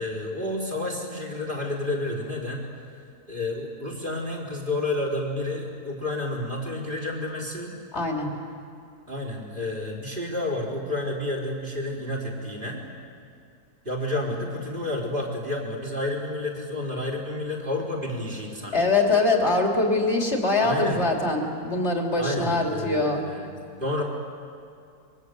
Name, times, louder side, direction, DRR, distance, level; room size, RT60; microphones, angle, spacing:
voice 1, 0.0-2.6 3.3-7.8 9.1-12.9 13.8-18.9 20.6-21.1 22.2-23.5 23.8-24.0, left 1 dB, 35° right, 1 dB, 4.3 m, -30 dB
voice 2, 7.9-8.3 18.7-23.2, left 2 dB, 45° left, 1 dB, 3.4 m, -23 dB
27.0 x 23.0 x 8.3 m, 2.4 s
omnidirectional pair, 1.6 m